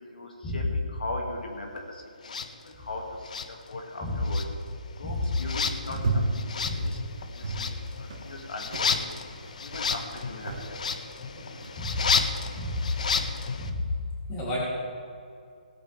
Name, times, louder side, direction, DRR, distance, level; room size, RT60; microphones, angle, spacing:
voice 1, 0.0-2.4 2.6-4.4 5.0-7.0 7.3-9.1 9.6-10.8, left 2 dB, 80° left, 1 dB, 2.4 m, -39 dB
sound 1, 2.2-2.5 3.2-4.0 4.2-13.7, left 5 dB, 55° left, 0.9 m, -32 dB
sound 2, 5.2-13.5, right 2 dB, 50° right, 1.7 m, -37 dB
voice 2, 12.5-12.9 13.6-13.8 14.3-14.7, left 1 dB, 20° left, -6 dB, 3.2 m, -32 dB
18.5 x 9.0 x 3.6 m, 2.5 s
hypercardioid pair, 165°, 5 cm